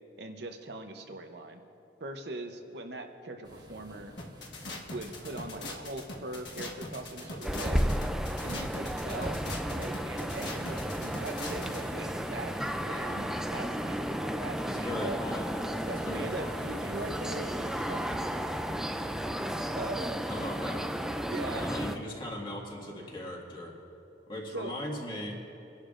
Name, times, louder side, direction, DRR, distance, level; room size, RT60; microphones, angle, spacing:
voice 1, 0.2-1.6 2.0-4.1 4.9-7.8 8.4-9.4 9.7-15.2 15.9-18.4 19.7-20.2 21.3-21.7 24.5-24.7, right 2 dB, 60° right, 5 dB, 0.8 m, -41 dB
sound 1, 3.4-18.6, equal, 20° right, 1.5 m, -50 dB
sound 2, 4.2-11.8, left 2 dB, 70° left, 1.4 m, -41 dB
sound 3, 7.4-22.0, equal, 5° right, 0.3 m, -33 dB
voice 2, 14.6-15.5 15.8-16.6 20.3-20.9 21.5-23.7 24.3-25.5, left 1 dB, 25° left, -2 dB, 1.8 m, -39 dB
28.5 x 11.5 x 2.5 m, 3.0 s
head